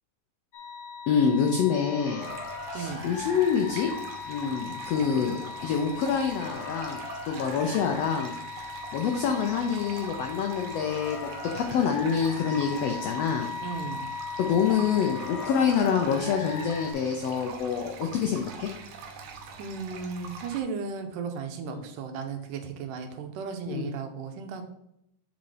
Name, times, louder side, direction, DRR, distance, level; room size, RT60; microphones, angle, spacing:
sound 1, 0.5-16.9, left 4 dB, 70° left, 1.4 m, -38 dB
voice 1, 1.1-2.2 2.7-3.9 4.3-7.0 7.3-8.3 8.9-11.3 11.5-13.5 14.4-18.7 21.6-21.8 23.7-23.9, left 7 dB, 90° left, 4 dB, 1.4 m, -26 dB
sound 2, 2.2-20.6, right 4 dB, 70° right, 2.1 m, -44 dB
voice 2, 13.6-14.1 19.6-24.7, right 5 dB, 85° right, 6 dB, 2.4 m, -35 dB
7.3 x 4.1 x 4.8 m, 0.77 s
omnidirectional pair, 3.7 m